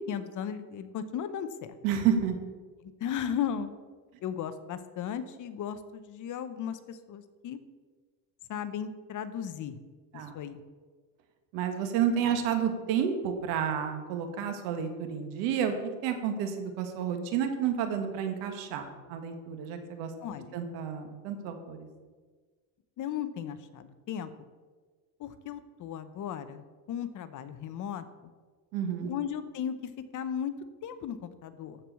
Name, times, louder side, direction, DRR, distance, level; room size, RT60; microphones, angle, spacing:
voice 1, 0.0-1.8 2.8-3.7 4.2-7.6 8.5-9.8 10.1-10.6 20.2-20.6 23.0-24.3 25.2-28.0 29.1-30.5 30.8-31.8, left 8 dB, 45° left, 11 dB, 0.9 m, -36 dB
voice 2, 1.8-2.4 10.1-10.3 11.5-15.7 16.0-20.1 20.5-21.9 28.7-29.1, right 8 dB, 90° right, 6 dB, 1.7 m, -30 dB
13.5 x 4.7 x 6.9 m, 1.4 s
cardioid pair, 135°, 43 cm